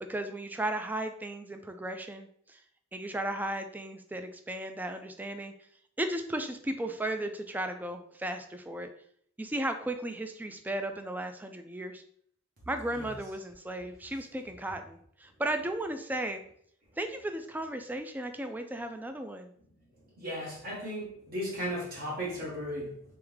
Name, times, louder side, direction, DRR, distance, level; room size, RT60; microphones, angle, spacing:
voice 1, 0.0-2.6 2.9-5.5 6.0-8.9 9.4-12.0 12.7-16.4 17.0-19.5, right 1 dB, 10° right, 7 dB, 0.3 m, -35 dB
voice 2, 20.2-23.0, equal, 50° right, -4 dB, 1.3 m, -36 dB
3.5 x 3.5 x 3.2 m, 0.65 s
head